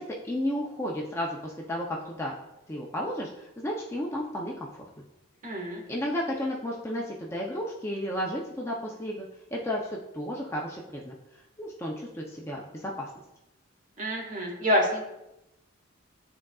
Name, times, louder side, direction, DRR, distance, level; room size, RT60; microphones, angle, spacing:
voice 1, 0.0-2.4 2.7-4.8 5.9-11.1 11.6-13.1, equal, 15° left, -2 dB, 0.5 m, -33 dB
voice 2, 5.4-5.8 14.0-15.0, equal, 40° right, -1 dB, 1.6 m, -27 dB
11.0 x 3.7 x 2.3 m, 0.91 s
head